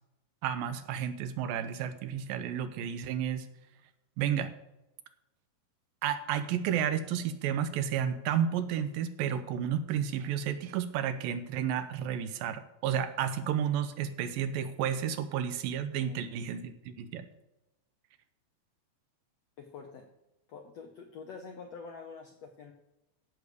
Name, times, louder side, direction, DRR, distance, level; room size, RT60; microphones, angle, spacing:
voice 1, 0.4-3.5 4.2-4.5 6.0-17.3, right 9 dB, 80° right, 10 dB, 2.3 m, -32 dB
voice 2, 19.6-20.1 20.5-22.7, left 5 dB, 75° left, 3 dB, 1.5 m, -46 dB
15.5 x 6.7 x 4.9 m, 0.92 s
omnidirectional pair, 4.2 m